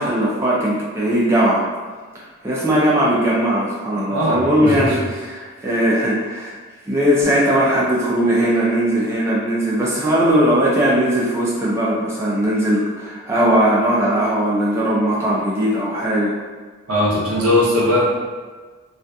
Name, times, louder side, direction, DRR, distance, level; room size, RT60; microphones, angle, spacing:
voice 1, 0.0-1.6 2.1-6.5 6.9-16.3, right 1 dB, 10° right, -6 dB, 0.3 m, -19 dB
voice 2, 4.1-5.0 16.9-18.0, left 1 dB, 80° right, -5 dB, 0.7 m, -19 dB
2.6 x 2.4 x 2.2 m, 1.4 s
head